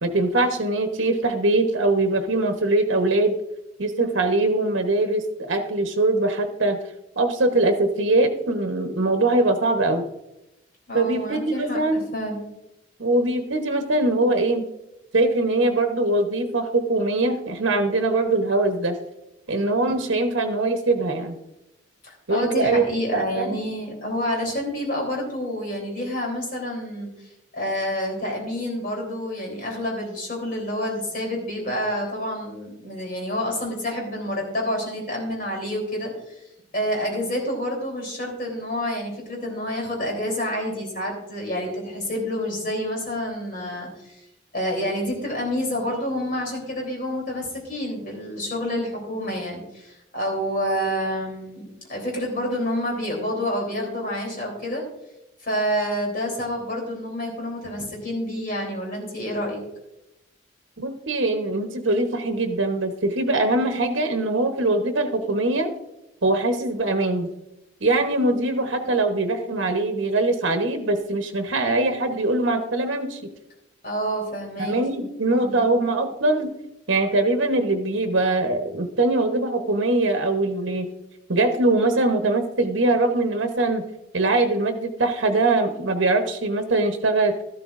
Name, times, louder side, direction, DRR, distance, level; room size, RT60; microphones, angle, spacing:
voice 1, 0.0-3.3 3.8-6.8 7.2-10.0 10.9-12.1 13.0-14.7 15.1-19.0 19.5-21.4 22.3-22.8 23.1-23.6 60.8-65.7 66.2-67.3 67.8-73.2 74.6-76.5 76.9-80.9 81.3-83.8 84.1-87.3, right 2 dB, 70° right, 6 dB, 1.0 m, -22 dB
voice 2, 10.9-12.4 19.8-19.9 22.0-36.1 36.7-44.2 44.5-54.8 55.4-59.6 68.8-69.0 73.8-74.7 75.4-75.7, equal, 45° left, -1 dB, 3.3 m, -28 dB
13.0 x 12.0 x 2.5 m, 0.89 s
head